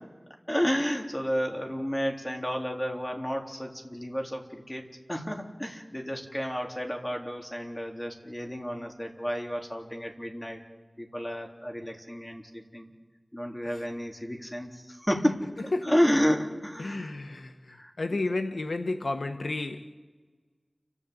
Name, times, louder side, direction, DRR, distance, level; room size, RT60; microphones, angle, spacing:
voice 1, 0.5-4.8 5.1-10.6 11.0-12.9 13.3-17.1 17.7-18.2, equal, 15° left, 1 dB, 3.5 m, -31 dB
voice 2, 16.8-19.9, left 2 dB, 80° left, 7 dB, 1.2 m, -32 dB
29.5 x 11.5 x 8.5 m, 1.3 s
wide cardioid pair, 60°, 0 cm